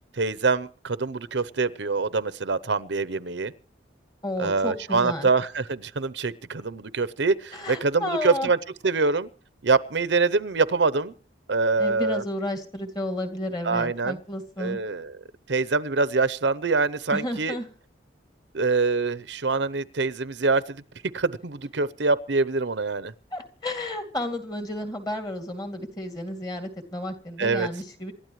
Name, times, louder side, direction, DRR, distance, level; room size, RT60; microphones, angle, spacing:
voice 1, 0.2-3.5 4.4-8.6 8.8-9.3 9.6-11.1 11.5-12.2 13.6-14.2 14.6-15.2 15.5-17.6 18.5-20.6 21.1-23.1 27.4-27.7, right 4 dB, 75° right, 0.8 m, -24 dB
voice 2, 4.2-5.3 7.5-8.5 11.8-14.8 17.1-17.7 23.3-28.1, left 1 dB, 20° left, 2.5 m, -32 dB
27.5 x 13.0 x 3.2 m
head